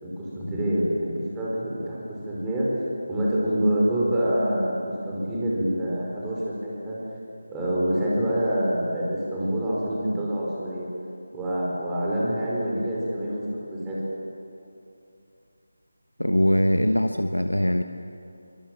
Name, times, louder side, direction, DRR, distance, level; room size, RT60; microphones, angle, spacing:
voice 1, 0.0-2.7 3.1-4.8 5.0-7.0 7.5-10.9 11.3-14.0, right 1 dB, 10° right, -6 dB, 4.9 m, -26 dB
voice 2, 16.2-17.8, equal, 85° left, 7 dB, 1.1 m, -22 dB
24.0 x 23.0 x 7.6 m, 2.7 s
figure-of-eight pair, 160°, 0 cm